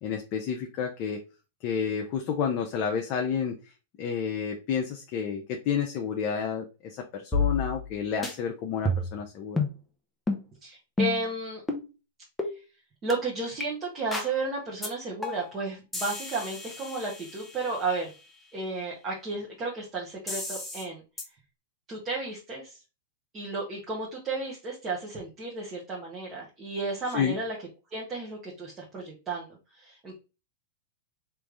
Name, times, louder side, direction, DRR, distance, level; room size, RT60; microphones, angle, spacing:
voice 1, 0.0-1.2 1.6-3.5 4.0-9.6 27.1-27.4, left 7 dB, 45° left, 2 dB, 0.7 m, -30 dB
sound 1, 7.3-7.9 8.2-8.3 8.8-9.2 9.6-9.8 10.3-10.4 11.0-11.3 11.7-11.8 12.4-12.5 13.1-13.2 13.6-13.7 14.1-14.3 14.8-14.9 15.2-15.5 15.9-17.8 20.3-20.8 21.2-21.3, left 2 dB, 5° left, 0.9 m, -30 dB
voice 2, 10.6-11.6 13.0-18.1 18.5-21.0 21.9-22.8 23.3-27.5 27.9-30.2, right 3 dB, 25° right, -4 dB, 1.4 m, -33 dB
3.4 x 3.1 x 3.7 m, 0.30 s
hypercardioid pair, 115°, 0 cm